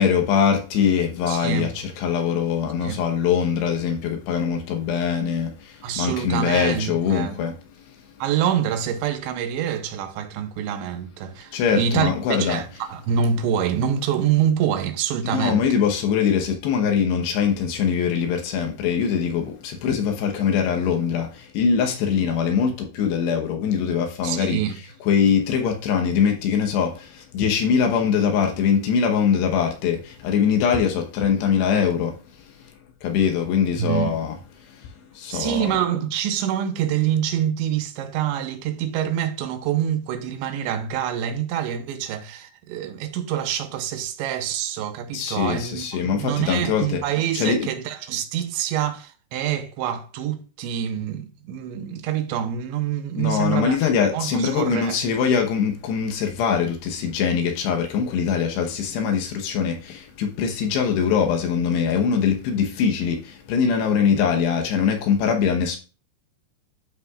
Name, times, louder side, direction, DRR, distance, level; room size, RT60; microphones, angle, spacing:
voice 1, 0.0-7.5 11.5-12.6 15.2-24.6 25.0-32.2 33.0-34.3 34.8-34.9 35.1-35.8 45.1-47.0 47.3-47.6 53.2-65.8, left 7 dB, 75° left, 3.0 m, -22 dB
voice 2, 1.3-1.7 2.8-3.0 5.8-7.4 8.2-15.7 24.2-24.8 33.8-34.2 35.3-53.8 54.1-55.3, right 9 dB, 90° right, 3.1 m, -26 dB
12.5 x 5.8 x 2.4 m
omnidirectional pair, 5.2 m